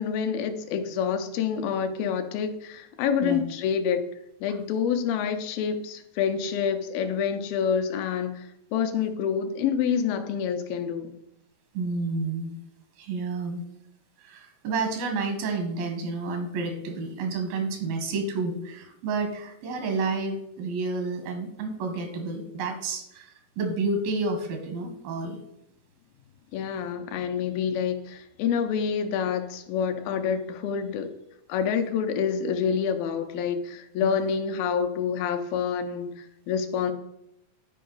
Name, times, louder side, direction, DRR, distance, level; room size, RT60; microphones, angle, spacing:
voice 1, 0.0-4.1 4.4-11.1 26.5-31.1 31.5-36.9, left 7 dB, 85° left, 6 dB, 2.5 m, -27 dB
voice 2, 11.7-12.6 13.0-13.6 14.2-25.4 34.0-34.2, right 3 dB, 85° right, 5 dB, 3.1 m, -30 dB
10.0 x 4.7 x 3.9 m, 0.81 s
omnidirectional pair, 4.1 m